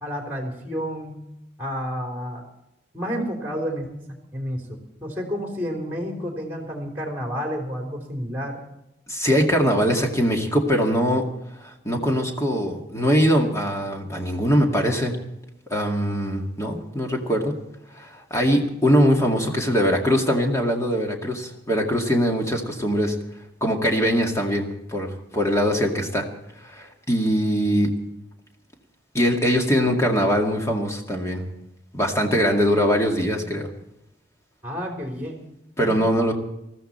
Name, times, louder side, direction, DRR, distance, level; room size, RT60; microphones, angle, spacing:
voice 1, 0.0-1.3 1.6-2.4 2.9-3.9 4.3-8.6 34.6-35.3 35.8-36.0, equal, 10° right, 1 dB, 3.4 m, -30 dB
voice 2, 9.1-11.3 11.6-15.2 15.7-17.5 18.0-23.1 23.6-26.3 26.6-27.9 29.1-31.4 31.9-33.7 35.8-36.3, equal, 15° left, 1 dB, 2.1 m, -22 dB
20.5 x 14.0 x 4.4 m, 0.86 s
head